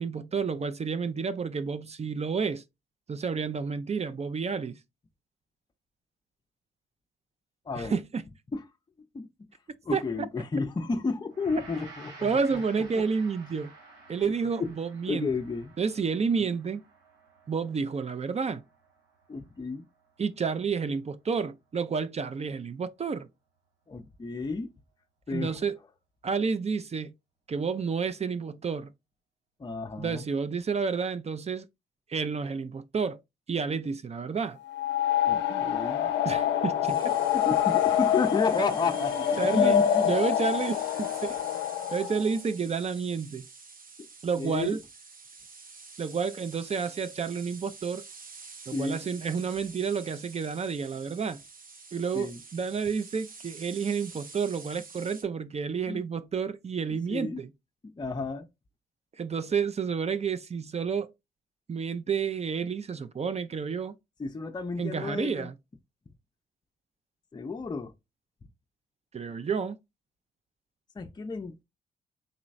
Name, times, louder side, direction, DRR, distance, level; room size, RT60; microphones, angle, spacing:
voice 1, 0.0-2.6 3.1-4.8 7.8-8.2 9.9-10.3 12.2-13.7 14.1-15.3 15.8-16.8 17.5-18.6 20.2-23.3 25.3-25.8 26.2-27.1 27.5-28.9 30.0-31.7 32.1-33.2 33.5-34.6 36.2-37.0 39.0-39.1 39.4-41.4 41.9-43.5 44.2-44.8 46.0-48.0 48.7-51.4 51.9-57.5 59.2-61.1 61.7-63.9 64.8-65.6 69.1-69.8, right 5 dB, 35° right, 0.5 m, -30 dB
voice 2, 7.7-8.0 8.5-8.6 9.1-9.3 9.9-12.6 13.0-13.1 14.2-14.3 14.6-14.7 15.1-15.7 19.3-19.9 23.9-24.7 25.3-25.6 29.6-30.3 35.3-36.1 36.9-40.1 44.0-44.1 44.4-44.8 48.7-49.0 52.1-52.4 55.9-56.1 57.1-57.4 58.0-58.5 64.2-65.5 67.3-67.9 71.0-71.6, left 4 dB, 25° left, 0.5 m, -32 dB
Gong, 11.3-20.7, right 3 dB, 90° right, 1.4 m, -52 dB
sound 1, 34.7-42.3, left 10 dB, 85° left, 0.5 m, -26 dB
sound 2, 36.8-55.2, right 4 dB, 50° right, 1.0 m, -48 dB
4.0 x 3.0 x 2.4 m
supercardioid pair, 50°, 18 cm